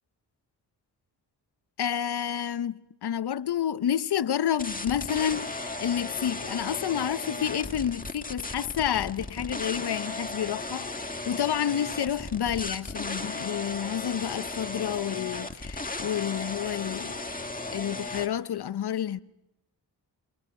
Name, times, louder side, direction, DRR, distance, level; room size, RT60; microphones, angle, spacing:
voice 1, 1.8-10.9 11.3-17.2 17.7-19.2, left 9 dB, 60° left, 0.8 m, -29 dB
sound 1, 4.6-18.3, left 2 dB, 20° left, 1.8 m, -36 dB
27.5 x 24.0 x 4.9 m
supercardioid pair, 40°, 44 cm